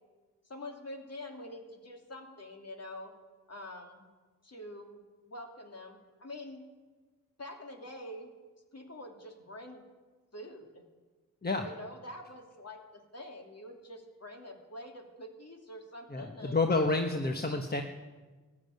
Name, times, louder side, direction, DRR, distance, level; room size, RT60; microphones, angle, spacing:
voice 1, 0.4-3.1 3.5-4.0 4.4-6.6 7.4-8.3 8.7-9.8 10.3-10.8 11.6-16.8, left 1 dB, 50° left, 3 dB, 2.7 m, -46 dB
voice 2, 16.1-17.8, left 3 dB, 30° left, 4 dB, 1.2 m, -29 dB
15.0 x 9.6 x 9.3 m, 1.3 s
cardioid pair, 65°, 33 cm